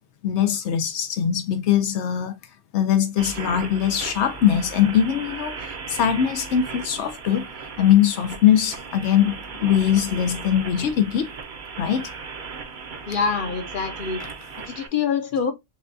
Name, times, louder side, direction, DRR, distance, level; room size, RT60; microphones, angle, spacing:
voice 1, 0.2-2.3 2.7-7.4 7.8-11.3 11.8-12.1, left 10 dB, 85° left, 0.9 m, -21 dB
sound 1, 3.2-14.9, right 5 dB, 50° right, 0.7 m, -37 dB
voice 2, 13.1-14.2 14.6-15.5, left 6 dB, 55° left, 0.8 m, -25 dB
5.8 x 2.3 x 2.5 m
omnidirectional pair, 1.1 m